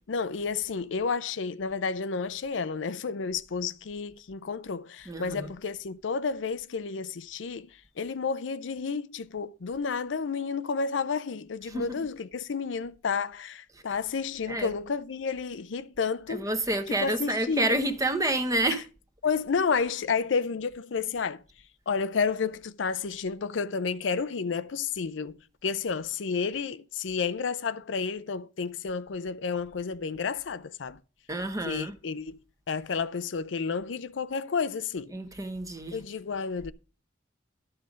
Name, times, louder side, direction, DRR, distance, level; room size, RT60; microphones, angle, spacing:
voice 1, 0.1-16.5 16.9-17.8 19.2-21.4 21.9-31.0 31.6-32.4 32.7-35.1 35.9-36.7, left 5 dB, 75° left, 0.5 m, -31 dB
voice 2, 5.1-5.5 11.7-11.9 14.5-14.7 16.3-18.8 31.3-32.0 35.1-36.0, right 1 dB, 20° right, 1.0 m, -28 dB
12.0 x 5.6 x 5.0 m
head